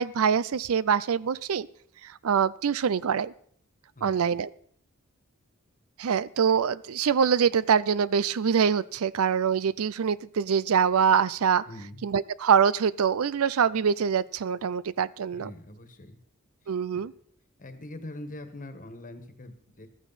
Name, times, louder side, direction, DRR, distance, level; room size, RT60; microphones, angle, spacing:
voice 1, 0.0-1.7 2.0-3.3 4.0-4.5 6.0-11.6 12.0-15.5 16.7-17.1, right 7 dB, 75° right, 20 dB, 0.5 m, -24 dB
voice 2, 11.7-12.0 15.3-16.2 16.9-17.1 17.6-19.9, left 1 dB, 40° left, 8 dB, 1.6 m, -43 dB
15.0 x 13.0 x 4.1 m, 0.63 s
head